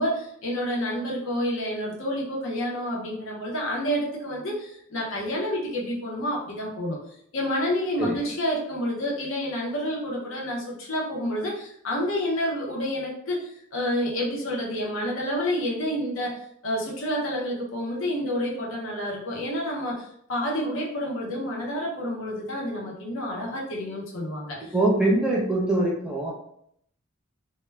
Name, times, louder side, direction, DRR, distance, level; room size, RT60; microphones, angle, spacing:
voice 1, 0.0-7.0 7.3-16.4 16.6-24.7, equal, 65° left, -3 dB, 0.7 m, -29 dB
voice 2, 8.0-8.3 24.7-26.3, right 2 dB, 5° right, -4 dB, 0.6 m, -23 dB
2.2 x 2.1 x 3.2 m, 0.70 s
head